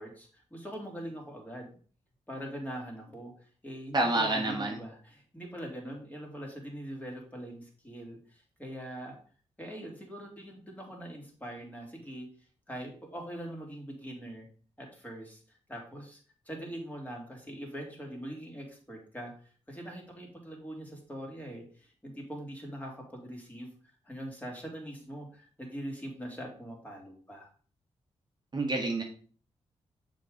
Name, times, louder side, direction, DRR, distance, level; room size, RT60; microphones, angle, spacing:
voice 1, 0.0-1.7 2.3-3.3 3.6-9.2 9.6-12.3 12.7-14.5 14.8-15.4 15.7-16.2 16.5-19.3 19.7-23.7 24.0-27.5, equal, 15° left, -1 dB, 2.5 m, -42 dB
voice 2, 3.9-4.8 28.5-29.0, right 2 dB, 40° right, 1 dB, 1.3 m, -28 dB
6.7 x 3.9 x 5.0 m, 0.42 s
cardioid pair, 85°, 12 cm